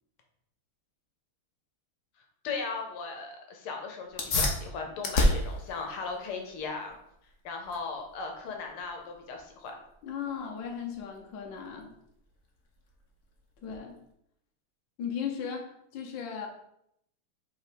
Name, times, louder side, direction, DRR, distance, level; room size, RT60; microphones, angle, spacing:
voice 1, 2.4-7.0 7.4-9.7, left 4 dB, 80° left, 3 dB, 1.9 m, -37 dB
sound 1, 4.1-14.1, left 2 dB, 50° left, 1.0 m, -34 dB
voice 2, 10.0-12.0 13.6-14.0 15.0-15.7 15.9-16.5, left 7 dB, 65° left, 1 dB, 1.5 m, -36 dB
5.3 x 3.5 x 5.1 m, 0.76 s
omnidirectional pair, 2.3 m